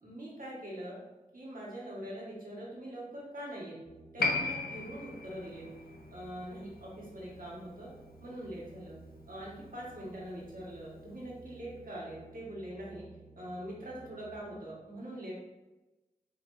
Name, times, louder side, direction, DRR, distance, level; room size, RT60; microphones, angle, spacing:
voice 1, 0.0-1.0 1.3-3.8 4.1-5.7 6.1-7.9 8.2-9.0 9.3-13.0 13.3-15.3, right 1 dB, 65° right, -6 dB, 1.4 m, -43 dB
sound 1, 3.9-14.4, right 2 dB, 60° left, 1.3 m, -55 dB
Piano, 4.2-11.2 11.4-11.5, left 3 dB, 85° left, 0.5 m, -38 dB
5.9 x 2.6 x 2.6 m, 1.1 s
wide cardioid pair, 45°, 15 cm